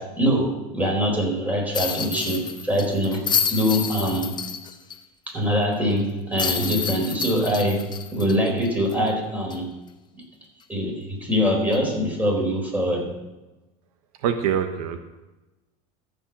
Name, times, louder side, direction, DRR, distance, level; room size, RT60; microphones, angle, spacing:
voice 1, 0.0-4.3 5.3-9.7 10.7-13.1, equal, 10° right, -1 dB, 4.2 m, -23 dB
sound 1, 1.7-5.0 5.3-5.4 6.4-9.1 9.5-9.6 11.7-11.9, left 7 dB, 25° left, 1.0 m, -29 dB
voice 2, 14.2-15.0, right 8 dB, 80° right, 7 dB, 1.0 m, -24 dB
14.0 x 5.3 x 7.3 m, 1.1 s
supercardioid pair, 125°, 18 cm